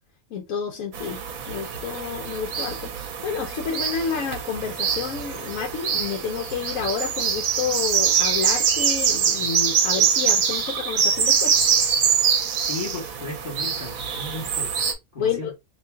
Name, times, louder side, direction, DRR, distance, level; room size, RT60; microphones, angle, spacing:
voice 1, 0.3-1.2 1.5-11.6 15.2-15.5, left 6 dB, 70° left, 1.0 m, -30 dB
sound 1, 0.9-14.9, right 7 dB, 70° right, 1.1 m, -24 dB
voice 2, 12.6-14.7 15.1-15.5, left 2 dB, 40° left, 1.6 m, -35 dB
2.8 x 2.7 x 3.3 m
omnidirectional pair, 1.5 m